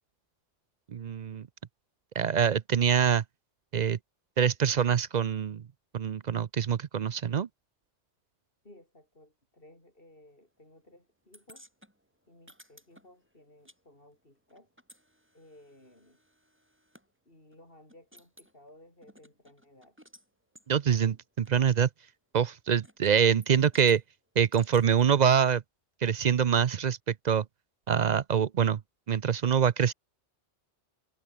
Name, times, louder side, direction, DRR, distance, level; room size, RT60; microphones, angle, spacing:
voice 1, 0.9-1.5 2.2-3.2 3.7-4.0 4.4-5.6 5.9-7.5 20.7-21.9 22.3-24.0 24.4-25.6 26.0-27.0 27.2-27.4 27.9-28.8 29.1-29.9, right 7 dB, 50° right, 0.6 m, -25 dB
voice 2, 8.6-11.7 12.3-14.7 15.3-16.2 17.3-20.0 20.9-21.2, left 1 dB, 50° left, 6.9 m, -57 dB
sound 1, 11.3-13.8 14.1-17.1 17.5-17.6 17.9-18.5 19.0-20.3 20.6-20.7 21.5-21.6 22.8-23.1 23.4-24.0 24.5-25.5, equal, 10° right, 7.3 m, -57 dB
omnidirectional pair, 1.2 m